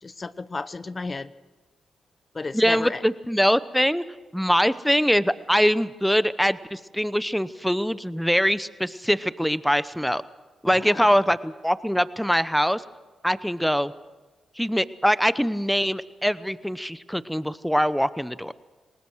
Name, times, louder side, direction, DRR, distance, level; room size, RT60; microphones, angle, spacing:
voice 1, 0.0-1.3 2.3-3.0 10.7-11.1, left 3 dB, 35° left, 15 dB, 0.8 m, -33 dB
voice 2, 2.5-4.0 4.3-10.2 10.6-12.8 13.2-13.9 14.6-18.5, equal, ahead, 16 dB, 0.9 m, -23 dB
27.0 x 20.0 x 6.4 m, 1.2 s
supercardioid pair, 45°, 0 cm